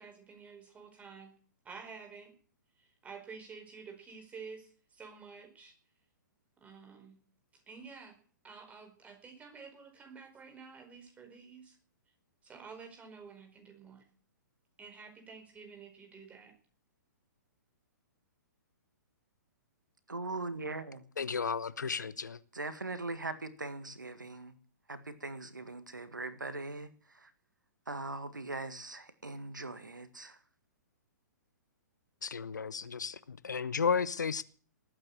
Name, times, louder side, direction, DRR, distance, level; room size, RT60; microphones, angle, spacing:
voice 1, 0.0-1.3 1.6-2.3 2.8-5.7 6.6-7.2 7.5-8.2 8.4-11.8 12.4-14.1 14.8-16.5, right 5 dB, 15° right, 4.7 m, -50 dB
voice 2, 20.1-21.0 22.5-24.5 24.9-26.9 27.2-27.3 27.9-30.4, right 3 dB, 80° right, 1.9 m, -40 dB
voice 3, 21.2-22.4 32.2-34.4, left 5 dB, 70° left, 1.0 m, -33 dB
19.5 x 9.0 x 7.9 m
figure-of-eight pair, 120°, 10 cm